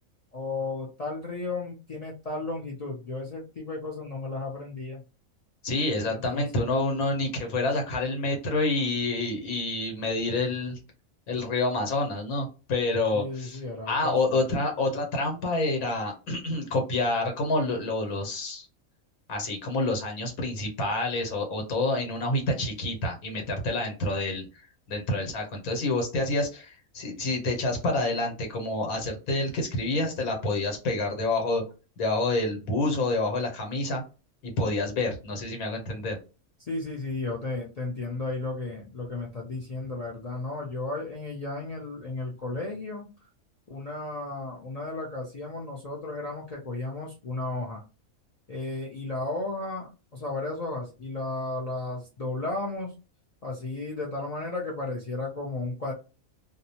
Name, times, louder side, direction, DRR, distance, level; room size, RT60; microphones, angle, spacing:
voice 1, 0.3-5.0 6.1-6.6 13.1-14.4 36.6-43.1 43.7-47.8 48.5-52.9 53.4-55.9, left 2 dB, 60° left, -2 dB, 0.4 m, -34 dB
voice 2, 5.6-10.8 11.3-13.6 13.9-18.7 19.3-24.5 24.9-31.6 32.0-34.0 34.4-36.2, left 2 dB, 85° left, 3 dB, 1.3 m, -28 dB
2.7 x 2.1 x 2.7 m, 0.32 s
omnidirectional pair, 1.5 m